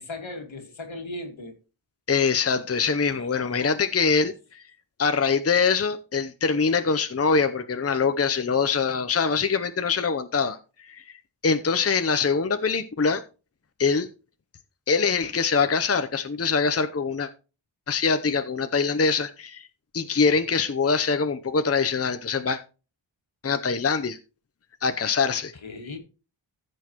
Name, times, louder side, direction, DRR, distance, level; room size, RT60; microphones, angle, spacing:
voice 1, 0.0-1.6 3.1-3.7 25.6-26.0, left 2 dB, 75° left, 2.2 m, -38 dB
voice 2, 2.1-4.6 5.0-13.2 13.8-14.1 14.9-17.3 17.9-19.7 19.9-22.6 23.4-24.2 24.8-25.5, left 5 dB, 30° left, 0.7 m, -24 dB
15.0 x 6.3 x 3.0 m
wide cardioid pair, 80°, 47 cm